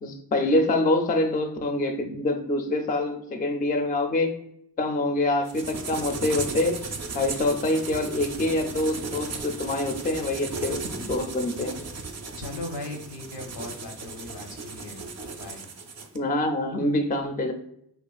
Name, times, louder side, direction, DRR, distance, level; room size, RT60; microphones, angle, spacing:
voice 1, 0.0-4.4 4.8-6.8 7.1-11.8 16.1-17.5, left 2 dB, 25° left, 5 dB, 0.3 m, -25 dB
sound 1, 5.5-16.2, right 4 dB, 40° right, 0.4 m, -36 dB
voice 2, 12.4-15.0 15.4-15.6, left 2 dB, 80° left, 2 dB, 0.7 m, -38 dB
2.8 x 2.4 x 2.3 m, 0.73 s
cardioid pair, 55°, 40 cm